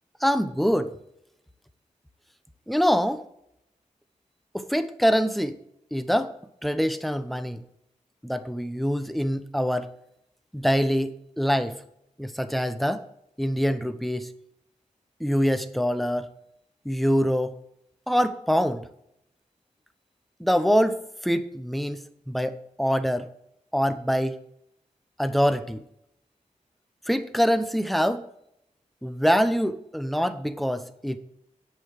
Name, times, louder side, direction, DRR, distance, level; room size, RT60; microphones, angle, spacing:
voice 1, 0.2-0.9 2.7-3.2 4.5-5.6 5.9-6.3 6.6-7.6 8.2-9.9 10.5-11.7 12.2-13.0 13.4-14.3 15.2-16.3 16.8-17.5 18.1-18.8 20.4-21.0 21.2-23.3 23.7-24.4 25.2-25.8 27.1-28.2 29.0-31.2, equal, ahead, 11 dB, 0.7 m, -24 dB
10.5 x 5.7 x 6.5 m, 0.77 s
wide cardioid pair, 115°, 14 cm